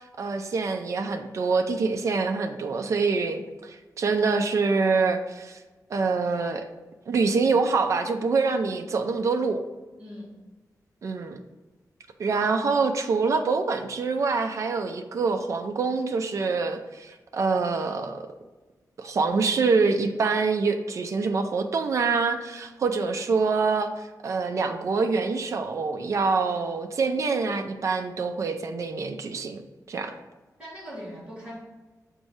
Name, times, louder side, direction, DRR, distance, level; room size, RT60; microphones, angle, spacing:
voice 1, 0.2-5.6 5.9-6.7 7.1-9.6 11.0-11.4 12.2-18.3 19.0-29.6 29.9-30.1, right 4 dB, 50° right, 6 dB, 0.4 m, -25 dB
voice 2, 10.0-10.4 30.6-31.6, equal, 15° right, -6 dB, 1.6 m, -40 dB
7.4 x 2.7 x 4.8 m, 1.2 s
wide cardioid pair, 160°, 7 cm